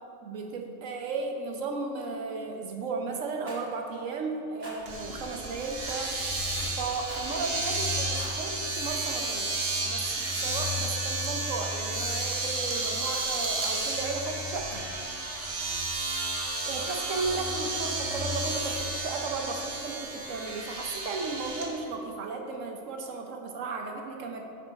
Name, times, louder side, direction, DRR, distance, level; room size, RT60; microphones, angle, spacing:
voice 1, 0.2-6.2 6.8-9.6 9.9-14.8 16.7-24.4, right 3 dB, 75° right, 2 dB, 1.2 m, -35 dB
Rattle, 3.5-3.7 4.6-4.8 5.9-6.1 7.1-7.3 8.0-8.4, equal, 20° right, 1.4 m, -43 dB
Domestic sounds home sounds, 4.9-21.7, right 2 dB, 50° right, 1.2 m, -32 dB
10.5 x 4.1 x 4.6 m, 2.7 s
omnidirectional pair, 1.4 m